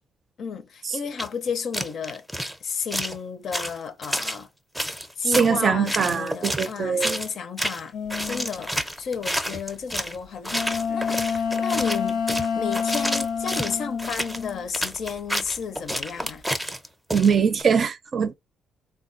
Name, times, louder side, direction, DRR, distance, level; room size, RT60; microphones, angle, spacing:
voice 1, 0.4-2.2 2.6-4.5 5.2-7.9 8.3-12.2 12.5-16.4, left 6 dB, 60° left, 0.5 m, -32 dB
sound 1, 1.2-1.3 1.7-2.5 2.9-3.2 3.5-4.4 4.7-5.5 5.9-6.7 7.0-7.3 7.6-7.8 8.1-10.2 10.4-17.6, equal, ahead, 0.6 m, -29 dB
voice 2, 5.3-7.2 17.1-18.4, right 6 dB, 45° right, 0.5 m, -22 dB
sound 2, 7.9-8.5 10.5-15.2 15.4-16.2, left 6 dB, 90° left, 0.8 m, -28 dB
3.5 x 2.3 x 2.6 m
cardioid pair, 90°, 0 cm